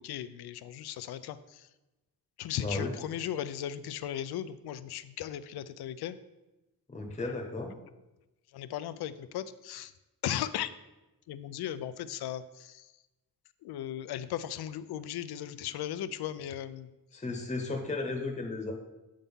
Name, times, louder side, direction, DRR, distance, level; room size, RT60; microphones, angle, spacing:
voice 1, 0.0-1.6 2.4-6.2 7.2-7.3 8.5-9.9 10.2-10.7 11.3-12.8 13.6-16.9, left 11 dB, 80° left, 13 dB, 0.5 m, -37 dB
voice 2, 2.6-2.9 6.9-7.7 17.1-18.7, left 3 dB, 20° left, 2 dB, 0.9 m, -34 dB
8.2 x 3.8 x 5.5 m, 1.0 s
wide cardioid pair, 130°, 38 cm